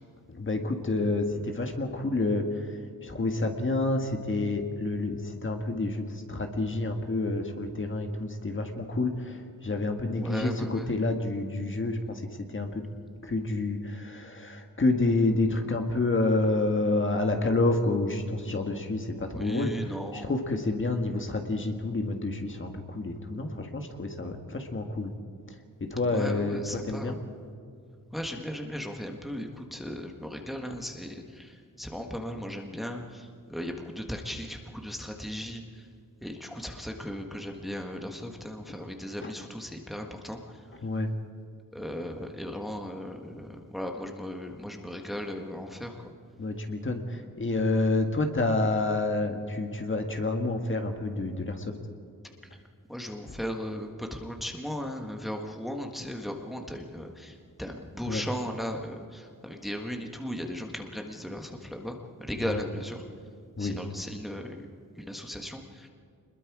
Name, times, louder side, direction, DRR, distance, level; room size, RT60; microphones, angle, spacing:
voice 1, 0.3-12.9 13.2-19.7 20.2-25.2 25.5-25.6 25.8-27.2 38.7-38.8 39.2-39.3 40.8-41.1 46.4-51.8 58.1-58.2 62.5-62.6 63.6-63.8, left 2 dB, 35° left, 4 dB, 1.7 m, -29 dB
voice 2, 10.1-10.9 19.3-20.4 26.1-27.2 28.1-35.9 36.2-40.9 41.7-46.1 52.4-52.6 52.9-63.0 63.6-64.7 64.9-65.9, equal, ahead, 2 dB, 1.6 m, -37 dB
26.5 x 21.5 x 4.9 m, 2.4 s
wide cardioid pair, 145°, 34 cm